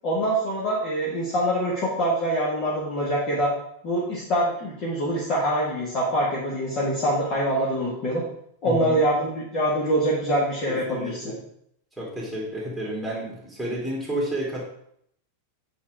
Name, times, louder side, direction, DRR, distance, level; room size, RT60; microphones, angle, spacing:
voice 1, 0.0-3.5 3.8-8.2 8.6-11.3, right 1 dB, 40° left, -6 dB, 1.9 m, -24 dB
voice 2, 8.6-9.0 10.7-11.4 12.0-14.6, right 1 dB, 5° left, -5 dB, 2.4 m, -31 dB
8.4 x 4.0 x 4.8 m, 0.70 s
figure-of-eight pair, 90°, 0 cm